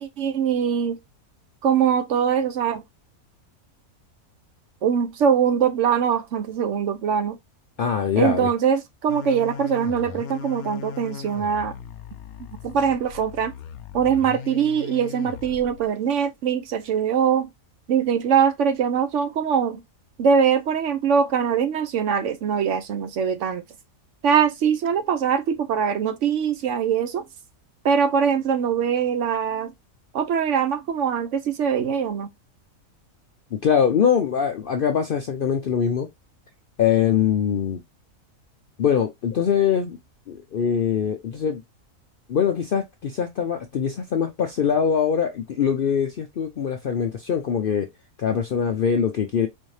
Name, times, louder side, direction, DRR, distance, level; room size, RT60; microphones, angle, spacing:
voice 1, 0.0-1.0 1.6-2.8 4.8-7.4 8.2-11.7 12.6-13.5 13.9-17.5 17.9-19.8 20.2-23.6 24.2-27.2 27.8-29.7 30.1-32.3, right 7 dB, 65° right, 0.9 m, -22 dB
voice 2, 7.8-8.5 33.5-36.1 36.8-37.8 38.8-40.0 40.3-41.6 42.3-47.9 48.2-49.5, left 7 dB, 65° left, 0.5 m, -23 dB
sound 1, 9.1-15.9, left 7 dB, 90° left, 1.0 m, -38 dB
4.2 x 2.7 x 3.1 m
omnidirectional pair, 1.5 m